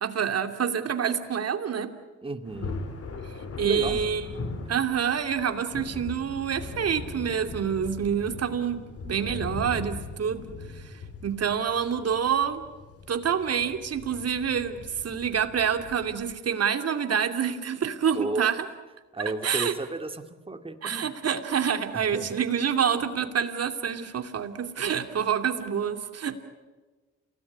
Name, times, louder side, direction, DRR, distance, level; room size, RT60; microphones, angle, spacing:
voice 1, 0.0-1.9 3.6-4.2 4.7-10.5 10.7-12.6 13.1-18.7 19.2-19.7 20.8-26.4, right 7 dB, 55° right, 8 dB, 2.7 m, -27 dB
voice 2, 2.2-2.8 3.6-4.0 18.1-18.5 19.1-21.1 21.9-22.4, right 2 dB, 20° right, 7 dB, 2.3 m, -33 dB
Thunder, 2.5-16.3, left 3 dB, 50° left, 3.9 m, -40 dB
28.5 x 18.0 x 9.8 m, 1.3 s
cardioid pair, 75°, 30 cm